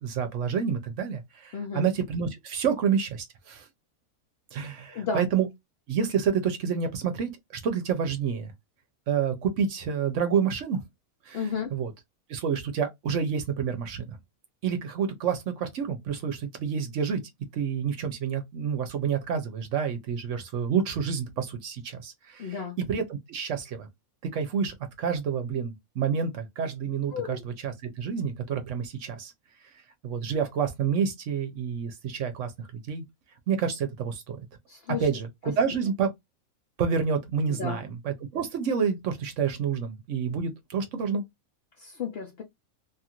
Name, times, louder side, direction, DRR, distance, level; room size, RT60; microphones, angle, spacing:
voice 1, 0.0-3.7 4.5-5.5 5.9-8.5 9.1-10.8 11.3-11.5 11.7-11.9 12.3-14.2 14.6-17.2 17.5-22.6 22.9-23.9 24.3-29.3 30.0-33.0 33.5-34.4 35.0-36.1 36.8-41.2, right 7 dB, 65° right, 0.9 m, -28 dB
voice 2, 1.5-1.9 4.9-5.3 11.3-11.7 22.4-22.8 27.1-27.4 34.7-35.1 37.5-37.8 41.8-42.4, left 6 dB, 60° left, 0.7 m, -33 dB
2.7 x 2.5 x 2.8 m
omnidirectional pair, 1.5 m